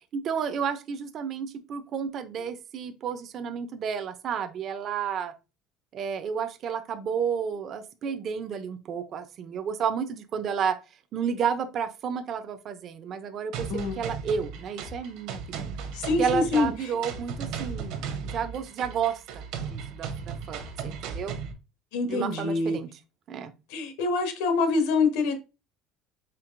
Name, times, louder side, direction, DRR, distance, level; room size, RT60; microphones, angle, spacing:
voice 1, 0.1-5.3 5.9-10.8 11.1-15.7 16.2-21.4 22.1-22.9 23.3-23.5, right 7 dB, 30° right, 9 dB, 0.4 m, -31 dB
sound 1, 13.5-21.5, right 6 dB, 60° right, 0.8 m, -36 dB
voice 2, 15.9-16.7 21.9-22.8 23.7-25.3, left 3 dB, 80° left, 6 dB, 1.0 m, -25 dB
4.4 x 3.7 x 2.4 m, 0.28 s
cardioid pair, 175°, 0 cm